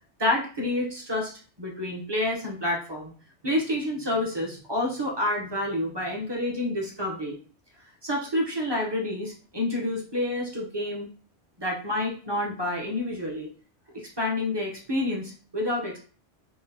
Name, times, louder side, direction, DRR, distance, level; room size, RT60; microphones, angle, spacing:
voice 1, 0.2-1.3 1.6-3.1 3.4-7.4 8.0-11.1 11.6-13.5 13.9-16.0, left 1 dB, 25° right, -2 dB, 0.6 m, -28 dB
3.9 x 2.3 x 2.7 m, 0.39 s
omnidirectional pair, 1.2 m